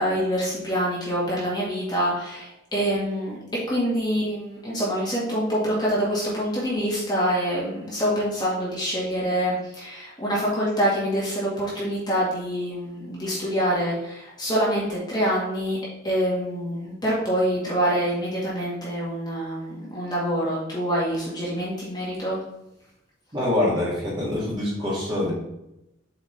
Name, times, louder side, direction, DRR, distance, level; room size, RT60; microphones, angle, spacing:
voice 1, 0.0-3.4 3.7-15.8 16.0-22.4, equal, 20° left, -7 dB, 2.0 m, -26 dB
voice 2, 23.3-25.3, left 1 dB, 25° right, -7 dB, 2.6 m, -25 dB
7.4 x 4.9 x 3.5 m, 0.87 s
head